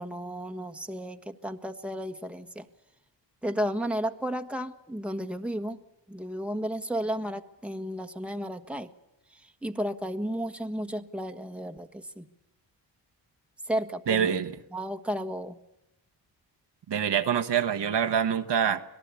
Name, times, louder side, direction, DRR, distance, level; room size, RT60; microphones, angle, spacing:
voice 1, 0.0-2.6 3.4-5.8 6.1-8.9 9.6-12.3 13.7-14.4 14.7-15.6, equal, 5° right, 6 dB, 1.5 m, -33 dB
voice 2, 14.1-14.5 16.9-18.8, right 8 dB, 65° right, 7 dB, 1.5 m, -25 dB
26.0 x 17.5 x 8.4 m, 0.91 s
cardioid pair, 65°, 44 cm